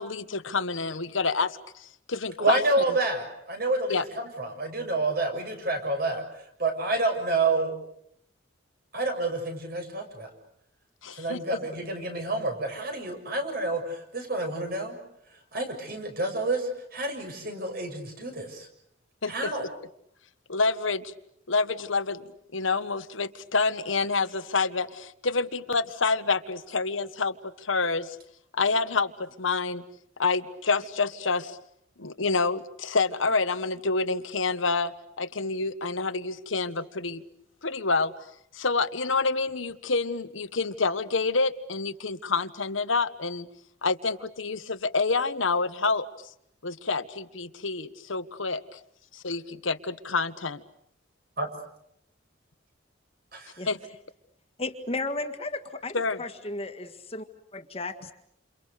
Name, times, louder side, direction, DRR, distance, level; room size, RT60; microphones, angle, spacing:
voice 1, 0.0-2.6 3.9-4.1 11.0-11.6 19.2-19.5 20.5-21.1 21.5-22.3 22.5-28.2 28.5-29.8 30.2-31.6 32.0-37.2 37.6-38.1 38.5-43.5 43.8-46.1 46.6-48.8 49.1-50.6 53.7-53.8 55.9-56.2, left 4 dB, 90° left, 11 dB, 1.4 m, -28 dB
voice 2, 2.4-6.2 6.6-7.7 8.9-10.3 11.2-15.0 15.5-18.7 19.3-19.7 51.4-51.5, right 2 dB, 50° right, 5 dB, 6.8 m, -28 dB
voice 3, 54.6-57.3 57.5-58.1, left 2 dB, 30° left, 7 dB, 1.9 m, -34 dB
29.5 x 28.5 x 6.7 m, 0.73 s
head